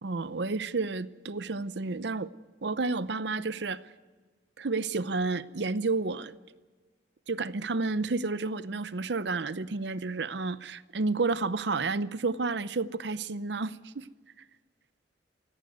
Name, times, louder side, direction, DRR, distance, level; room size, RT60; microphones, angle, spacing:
voice 1, 0.0-2.3 2.6-3.8 4.6-6.4 7.3-14.1, right 3 dB, 70° right, 0.7 m, -31 dB
17.5 x 16.5 x 9.5 m
head